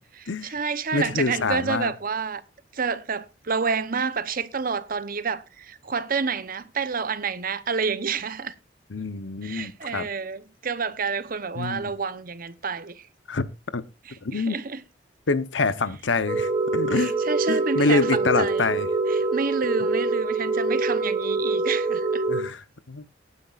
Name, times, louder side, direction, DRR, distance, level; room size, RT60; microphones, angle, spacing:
voice 1, 0.1-2.4 2.7-8.5 9.4-13.0 14.1-14.8 16.9-18.7 19.1-22.2, right 5 dB, 50° right, 0.9 m, -29 dB
voice 2, 0.9-1.9 8.9-10.1 11.6-11.9 13.3-13.4 13.7-13.8 14.2-14.6 15.3-17.1 17.5-18.9 22.3-23.2, left 3 dB, 80° left, 0.9 m, -26 dB
sound 1, 16.3-22.4, right 3 dB, 25° right, 4.9 m, -25 dB
19.0 x 9.7 x 2.5 m
head